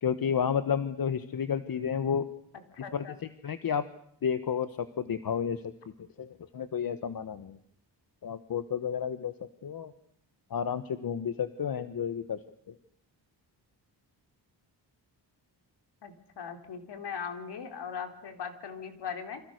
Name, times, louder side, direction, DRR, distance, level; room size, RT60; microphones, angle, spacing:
voice 1, 0.0-2.2 2.9-3.0 3.4-3.8 4.2-5.6 6.2-7.6 8.2-9.3 9.6-9.9 10.5-12.4 12.7-12.8, left 7 dB, 55° left, 12 dB, 1.2 m, -31 dB
voice 2, 2.7-3.1 16.0-19.4, left 6 dB, 70° left, 6 dB, 3.7 m, -39 dB
28.5 x 25.5 x 6.5 m, 0.67 s
wide cardioid pair, 150°, 43 cm